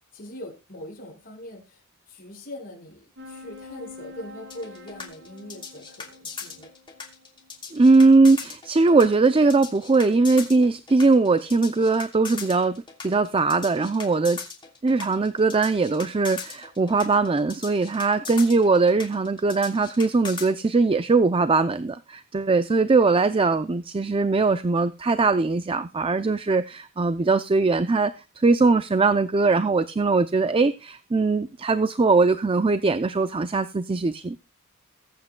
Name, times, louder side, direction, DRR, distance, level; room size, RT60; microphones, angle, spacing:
voice 1, 0.1-6.7 18.1-18.6, left 1 dB, 40° left, 5.2 m, -42 dB
sound 1, 3.2-8.0, left 2 dB, 60° right, 5.4 m, -46 dB
sound 2, 4.5-20.5, left 5 dB, 25° left, 2.8 m, -38 dB
voice 2, 7.7-12.8 13.0-14.4 14.8-34.4, right 3 dB, 25° right, 0.5 m, -20 dB
21.5 x 8.5 x 2.2 m
head